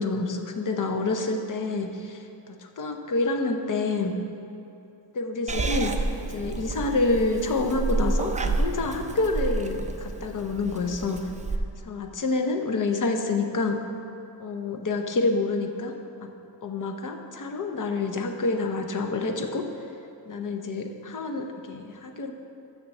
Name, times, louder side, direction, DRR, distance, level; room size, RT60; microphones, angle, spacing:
voice 1, 0.0-2.2 2.8-4.1 5.1-6.0 6.3-11.2 11.8-13.8 14.4-15.9 16.2-16.3 16.6-19.6 20.2-22.3, left 3 dB, 50° left, 5 dB, 0.8 m, -27 dB
Purr / Meow, 5.5-11.6, right 3 dB, 20° right, 0.4 m, -29 dB
7.2 x 6.7 x 6.6 m, 2.7 s
wide cardioid pair, 155°, 42 cm